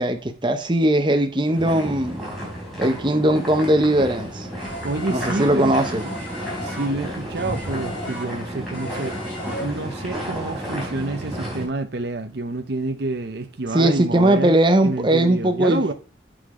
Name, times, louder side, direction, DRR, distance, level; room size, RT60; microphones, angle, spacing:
voice 1, 0.0-2.2 2.8-4.5 5.1-6.0 13.7-15.9, right 1 dB, 25° right, 0.8 m, -19 dB
sound 1, 1.5-11.6, equal, ahead, 3.6 m, -32 dB
sound 2, 4.6-10.1, equal, 45° left, 4.4 m, -36 dB
voice 2, 4.8-5.7 6.6-9.2 9.6-14.6 14.8-15.9, right 2 dB, 55° right, 0.7 m, -28 dB
6.6 x 6.0 x 4.9 m
head